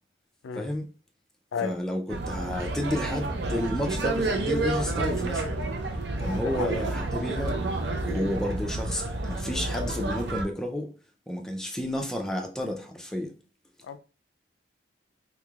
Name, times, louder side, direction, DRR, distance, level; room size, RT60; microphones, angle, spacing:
voice 1, 0.6-0.9 1.6-5.5 6.2-7.6 8.0-10.9 11.3-13.3, left 1 dB, 5° left, 0.4 m, -31 dB
sound 1, 2.1-10.4, right 2 dB, 60° right, 0.6 m, -30 dB
voice 2, 6.2-6.8 13.9-14.0, left 7 dB, 85° left, 0.3 m, -33 dB
3.5 x 3.1 x 2.4 m
head